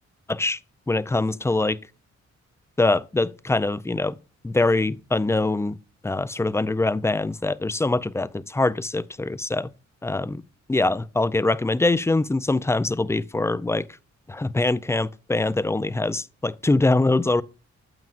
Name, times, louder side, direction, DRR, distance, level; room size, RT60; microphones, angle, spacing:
voice 1, 0.3-0.6 0.9-1.8 2.8-4.1 4.4-5.8 6.0-9.7 10.0-10.4 10.7-13.9 14.3-17.4, left 2 dB, 10° left, 0.4 m, -23 dB
9.0 x 7.5 x 2.5 m
cardioid pair, 70°, 29 cm